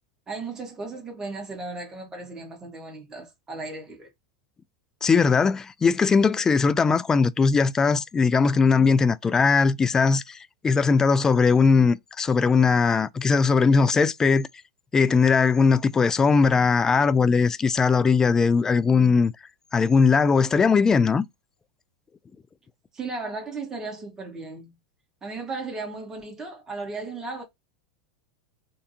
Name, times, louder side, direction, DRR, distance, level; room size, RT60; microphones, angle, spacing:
voice 1, 0.3-4.1 22.9-24.7 25.2-27.4, right 3 dB, 20° right, 1.8 m, -35 dB
voice 2, 5.0-10.4 10.6-14.5 14.9-19.3 19.7-21.3, left 5 dB, 20° left, 0.3 m, -20 dB
3.5 x 2.5 x 2.8 m
hypercardioid pair, 95°, 3 cm